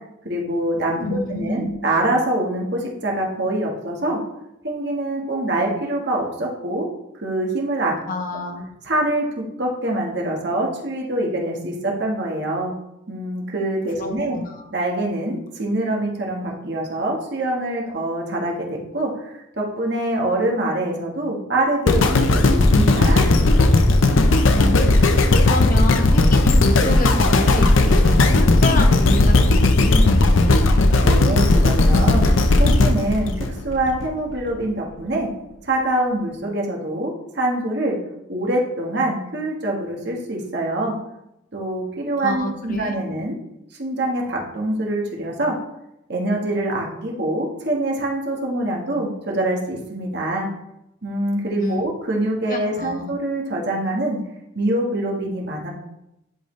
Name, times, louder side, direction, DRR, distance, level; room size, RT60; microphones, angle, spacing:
voice 1, 0.2-4.2 4.6-6.9 7.2-7.9 8.8-12.7 13.1-14.4 14.7-23.3 31.0-35.3 35.6-38.0 38.3-40.9 41.5-43.4 43.8-45.5 46.1-50.5 51.0-54.2 54.5-55.7, right 1 dB, 55° right, -1 dB, 1.5 m, -24 dB
voice 2, 1.0-1.8 8.1-8.7 14.0-14.7 24.5-30.7 42.2-43.1 51.6-51.8 52.5-53.2, left 1 dB, 45° left, 4 dB, 0.9 m, -28 dB
sound 1, 21.9-34.1 34.6-34.7, left 2 dB, 80° left, 0.7 m, -16 dB
10.5 x 4.0 x 3.2 m, 0.85 s
head